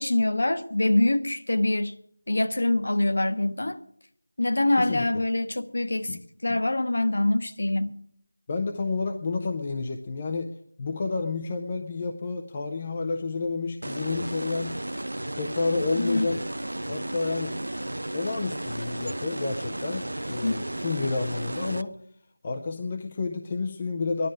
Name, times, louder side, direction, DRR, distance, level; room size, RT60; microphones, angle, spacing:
voice 1, 0.0-1.9 2.3-3.8 4.4-8.0 15.9-16.3 20.4-20.5, left 2 dB, 45° left, 1.0 m, -25 dB
voice 2, 8.5-14.8 15.3-16.4 16.9-17.6 18.1-22.0 22.4-24.3, left 3 dB, 15° left, 0.5 m, -30 dB
sound 1, 13.8-21.8, right 1 dB, 70° right, 0.7 m, -34 dB
18.5 x 12.0 x 4.9 m
figure-of-eight pair, 180°, 0 cm